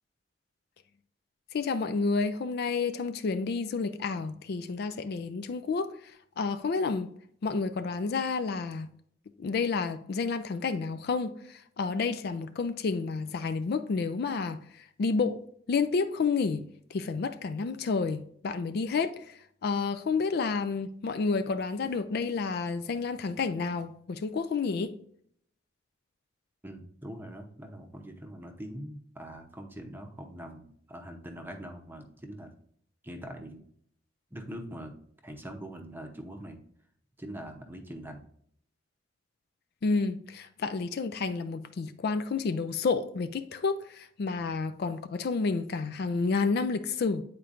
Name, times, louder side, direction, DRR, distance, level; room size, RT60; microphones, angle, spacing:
voice 1, 1.5-5.9 6.4-7.1 7.4-8.9 9.4-15.4 15.7-16.6 16.9-25.0 39.8-47.2, left 4 dB, 55° left, 0.4 m, -30 dB
voice 2, 26.6-32.5 33.0-33.6 34.3-35.0 35.2-36.6 37.2-38.2, equal, 10° right, 0.7 m, -43 dB
8.6 x 4.4 x 2.5 m
head